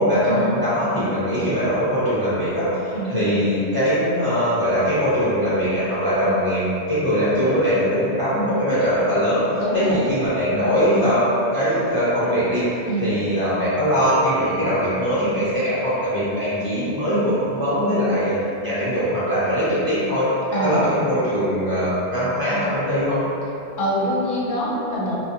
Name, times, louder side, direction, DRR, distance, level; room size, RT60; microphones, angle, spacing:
voice 1, 0.0-11.3 11.5-18.3 18.6-20.2 20.6-23.2, equal, 20° right, -14 dB, 1.0 m, -21 dB
voice 2, 9.6-10.0 12.9-13.1 20.5-20.8 23.8-25.2, equal, 60° left, -7 dB, 0.7 m, -24 dB
2.5 x 2.1 x 2.6 m, 2.8 s
omnidirectional pair, 1.1 m